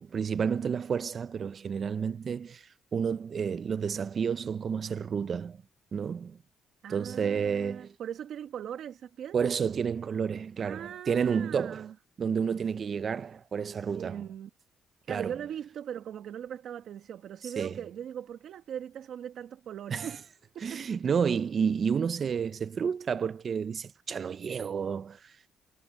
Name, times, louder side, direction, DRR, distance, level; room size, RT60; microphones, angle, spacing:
voice 1, 0.0-5.6 5.9-6.4 6.9-7.9 9.3-11.9 12.2-14.2 15.1-15.3 17.4-17.8 19.9-20.1 20.6-25.4, right 6 dB, 50° right, 0.7 m, -30 dB
voice 2, 6.8-9.5 10.6-11.9 13.7-14.5 15.1-20.2 20.5-21.1, right 9 dB, 70° right, 1.5 m, -40 dB
cardioid pair, 90°, 0 cm